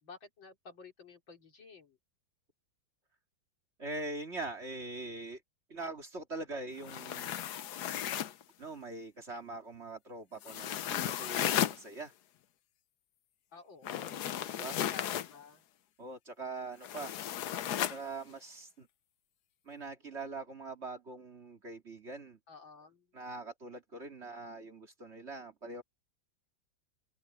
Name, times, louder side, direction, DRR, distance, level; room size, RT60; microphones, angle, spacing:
voice 1, 0.0-2.0 13.5-15.6 22.5-23.1, left 4 dB, 80° left, 4.3 m, -53 dB
voice 2, 3.8-5.4 5.7-7.4 8.6-12.1 14.5-14.8 16.0-17.2 17.9-18.9 19.7-22.4 23.1-25.8, right 3 dB, 35° right, 2.6 m, -43 dB
sound 1, 6.8-8.4 10.4-11.8 13.8-15.3 16.8-18.0, left 11 dB, 65° left, 1.2 m, -34 dB
open air
omnidirectional pair, 2.1 m